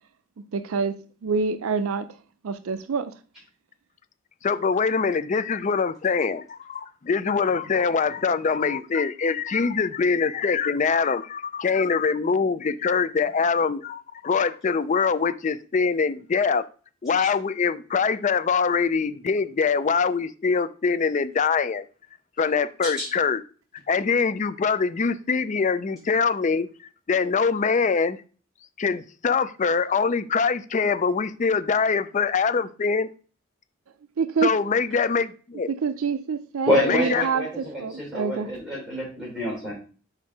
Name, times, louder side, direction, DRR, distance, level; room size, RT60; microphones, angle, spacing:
voice 1, 0.5-2.1 2.4-3.1 34.2-34.5 35.7-38.5, right 5 dB, 90° right, 0.5 m, -26 dB
voice 2, 4.4-16.6 17.0-21.8 22.4-23.4 23.9-26.7 27.1-28.2 28.8-33.1 34.4-35.7 36.8-37.2, left 5 dB, 35° left, 0.4 m, -23 dB
voice 3, 36.7-39.7, left 1 dB, 5° right, 3.4 m, -27 dB
5.0 x 4.4 x 4.7 m
head